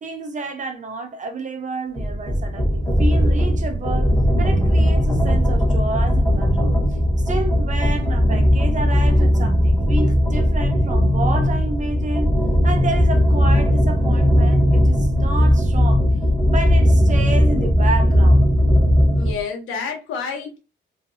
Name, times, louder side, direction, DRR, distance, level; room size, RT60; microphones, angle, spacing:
voice 1, 0.0-6.8 7.3-12.3 12.6-16.1 16.4-18.4, right 2 dB, 40° right, 0.8 m, -30 dB
sound 1, 2.0-19.4, equal, 10° left, 1.3 m, -17 dB
voice 2, 19.1-20.6, left 5 dB, 85° left, 1.2 m, -29 dB
2.9 x 2.7 x 2.8 m
cardioid pair, 90°, 20 cm